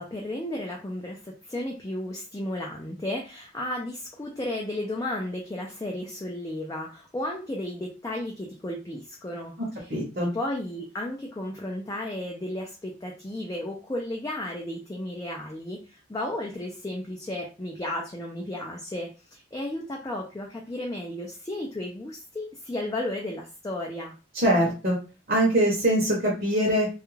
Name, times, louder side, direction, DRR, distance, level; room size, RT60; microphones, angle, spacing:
voice 1, 0.0-9.5 10.2-24.1, left 1 dB, 15° left, -1 dB, 0.3 m, -33 dB
voice 2, 9.9-10.3 24.3-25.0 25.3-26.9, right 1 dB, 45° right, -4 dB, 0.8 m, -23 dB
2.3 x 2.2 x 3.0 m, 0.32 s
head